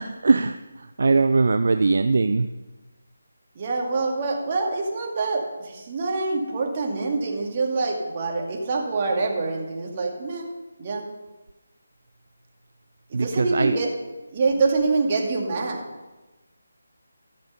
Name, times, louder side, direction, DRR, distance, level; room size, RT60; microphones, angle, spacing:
voice 1, 0.0-2.5 13.1-13.8, right 3 dB, 55° right, 10 dB, 0.4 m, -21 dB
voice 2, 3.6-10.5 10.8-11.0 13.1-13.9 14.3-15.8, right 3 dB, 30° right, 0 dB, 2.1 m, -25 dB
14.0 x 6.8 x 5.4 m, 1.1 s
figure-of-eight pair, 155°, 0 cm